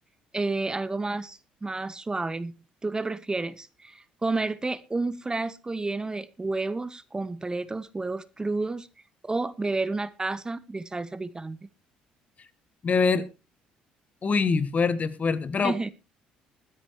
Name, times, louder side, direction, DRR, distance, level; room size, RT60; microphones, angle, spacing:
voice 1, 0.3-8.9 9.2-11.6 15.6-15.9, right 3 dB, 20° right, 0.8 m, -30 dB
voice 2, 12.8-13.2 14.2-15.7, left 5 dB, 40° left, 1.3 m, -24 dB
21.0 x 10.0 x 3.1 m
hypercardioid pair, 55°, 4 cm